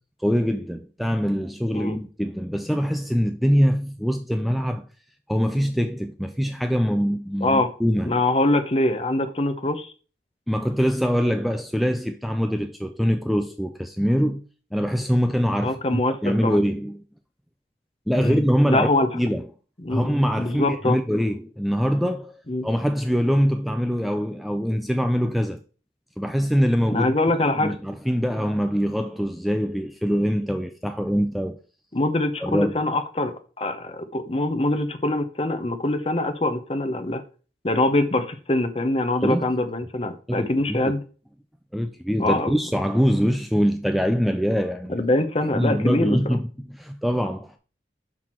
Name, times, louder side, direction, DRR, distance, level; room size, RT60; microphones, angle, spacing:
voice 1, 0.2-4.8 5.3-8.2 10.5-14.4 14.7-17.0 18.1-18.9 19.1-19.4 19.9-22.4 22.6-25.6 26.2-27.1 27.4-31.6 32.4-32.8 39.2-39.5 40.3-40.9 41.7-45.0 45.5-47.5, equal, ahead, 0.4 m, -23 dB
voice 2, 8.1-9.9 15.6-16.6 18.2-18.4 18.7-19.1 19.8-21.0 22.5-22.7 26.9-27.7 31.9-37.2 37.6-41.0 42.2-42.5 44.9-46.4, left 2 dB, 35° left, 0.9 m, -24 dB
6.1 x 5.8 x 4.5 m
head